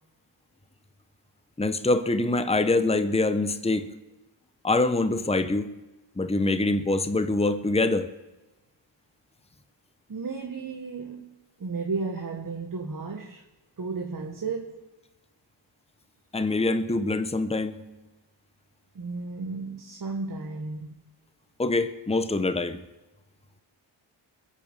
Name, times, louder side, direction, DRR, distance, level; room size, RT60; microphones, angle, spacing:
voice 1, 1.6-3.9 4.6-5.7 6.2-8.1 16.3-17.8 21.6-22.8, left 2 dB, 10° left, 1.1 m, -24 dB
voice 2, 10.1-11.3 11.6-13.4 13.8-14.8 18.9-20.9, right 4 dB, 40° right, 1.7 m, -33 dB
21.5 x 7.4 x 7.4 m
cardioid pair, 55°, 49 cm